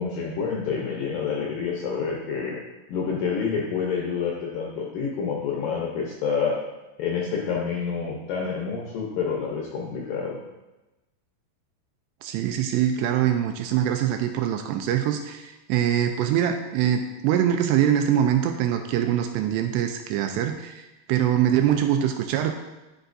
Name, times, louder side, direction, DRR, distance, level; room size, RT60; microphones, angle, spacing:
voice 1, 0.0-2.6 2.9-6.6 7.0-10.4, left 6 dB, 80° left, -2 dB, 2.0 m, -28 dB
voice 2, 12.2-22.5, right 10 dB, 85° right, 6 dB, 2.5 m, -23 dB
11.0 x 5.7 x 2.6 m, 1.1 s
omnidirectional pair, 5.1 m